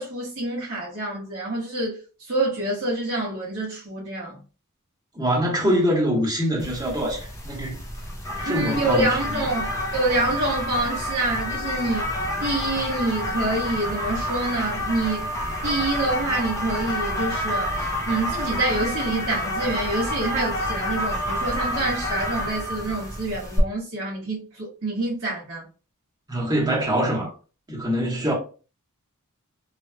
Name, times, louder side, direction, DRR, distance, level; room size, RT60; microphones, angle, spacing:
voice 1, 0.0-4.4 8.4-12.0 12.4-15.3 15.6-25.6, right 2 dB, 60° right, 1.3 m, -27 dB
voice 2, 5.1-7.8 8.4-9.2 26.3-27.3 27.7-28.3, equal, 20° right, 1.3 m, -24 dB
sound 1, 6.6-23.6, equal, 15° left, 0.6 m, -29 dB
3.1 x 3.0 x 2.2 m
head